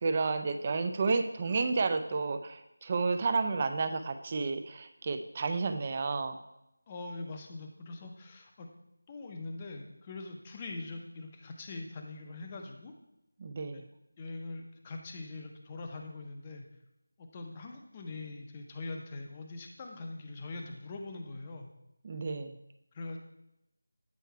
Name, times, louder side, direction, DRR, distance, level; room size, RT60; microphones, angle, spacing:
voice 1, 0.0-6.4 13.4-13.9 22.0-22.6, right 4 dB, 25° right, 8 dB, 0.4 m, -31 dB
voice 2, 6.9-8.7 9.1-12.9 13.7-13.8 14.2-16.7 17.2-21.7 22.9-23.2, left 2 dB, 20° left, 3 dB, 0.6 m, -42 dB
8.3 x 4.5 x 4.5 m, 0.87 s
figure-of-eight pair, 175°, 0 cm